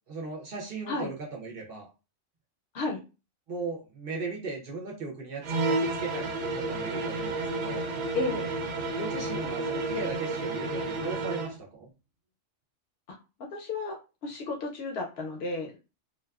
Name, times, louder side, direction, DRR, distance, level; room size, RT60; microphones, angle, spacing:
voice 1, 0.1-1.9 3.5-7.9 8.9-11.9, right 4 dB, 55° right, -1 dB, 0.8 m, -37 dB
sound 1, 5.4-11.6, right 2 dB, 85° right, 1.0 m, -31 dB
voice 2, 8.1-8.5 13.1-13.2 13.5-15.8, left 3 dB, 65° left, 1 dB, 0.7 m, -33 dB
2.4 x 2.2 x 2.2 m, 0.31 s
omnidirectional pair, 1.2 m